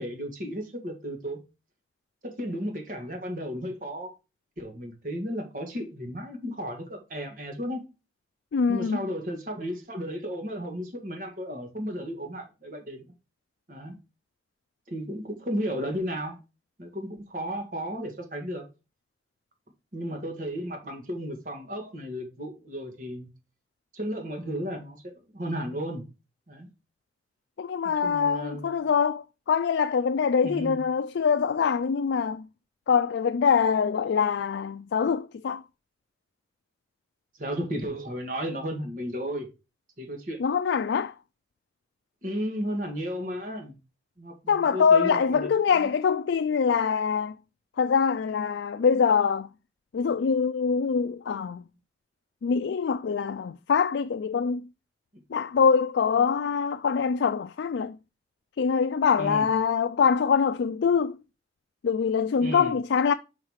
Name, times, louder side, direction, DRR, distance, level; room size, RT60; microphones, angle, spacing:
voice 1, 0.0-1.4 2.2-4.1 4.6-7.9 8.7-13.1 13.7-14.0 14.9-16.4 16.8-18.6 19.9-23.3 23.9-26.0 26.5-26.7 27.8-28.7 30.4-30.8 37.4-39.5 40.0-40.4 42.2-43.8 44.2-45.9 55.1-55.2 59.2-59.5 62.4-62.7, equal, 45° right, 1.8 m, -34 dB
voice 2, 8.5-9.0 27.6-32.5 32.9-35.6 40.4-41.1 44.5-47.3 47.8-49.5 49.9-51.7 52.4-54.7 55.3-58.0 58.6-61.2 61.8-63.1, left 6 dB, 80° left, 0.4 m, -24 dB
5.7 x 4.7 x 5.6 m
head